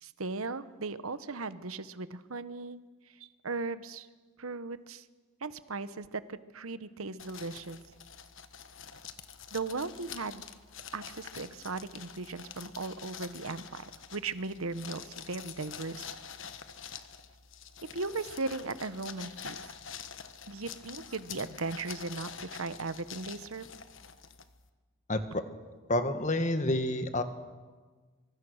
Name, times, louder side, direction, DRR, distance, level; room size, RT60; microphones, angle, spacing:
voice 1, 0.0-2.8 3.2-4.1 4.4-5.0 5.4-7.8 9.5-10.5 10.9-13.8 14.1-16.1 17.9-19.6 20.5-23.7, right 3 dB, 75° right, 14 dB, 1.1 m, -37 dB
sound 1, 7.2-24.7, left 7 dB, 60° left, 1.3 m, -46 dB
voice 2, 25.1-25.4 25.9-27.2, left 1 dB, 35° left, 9 dB, 1.6 m, -29 dB
24.5 x 24.0 x 6.5 m, 1.4 s
head